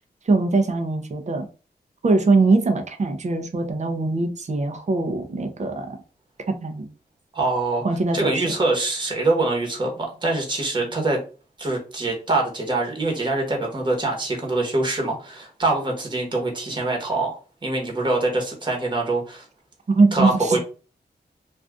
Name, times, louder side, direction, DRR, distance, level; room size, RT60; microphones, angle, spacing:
voice 1, 0.3-1.5 2.0-6.0 6.6-6.9 7.8-8.5 20.0-20.6, right 3 dB, 40° right, 5 dB, 0.7 m, -21 dB
voice 2, 7.3-7.8 8.1-11.2 11.6-19.4 20.1-20.6, right 2 dB, 25° right, 0 dB, 1.2 m, -24 dB
2.5 x 2.5 x 3.5 m, 0.35 s
cardioid pair, 70°, 17 cm